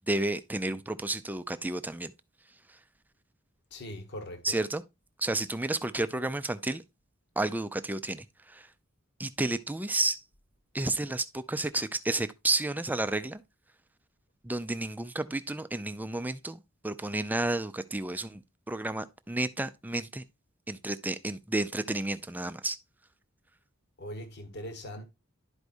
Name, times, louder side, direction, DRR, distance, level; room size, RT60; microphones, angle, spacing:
voice 1, 0.1-2.1 4.4-4.8 5.2-6.8 7.4-8.2 8.5-8.6 9.2-10.2 10.7-13.4 14.4-18.4 18.7-20.2 20.7-22.8, right 2 dB, 10° right, 0.4 m, -31 dB
voice 2, 3.7-4.6 24.0-25.0, equal, 55° left, 1.3 m, -41 dB
11.5 x 4.8 x 2.6 m
head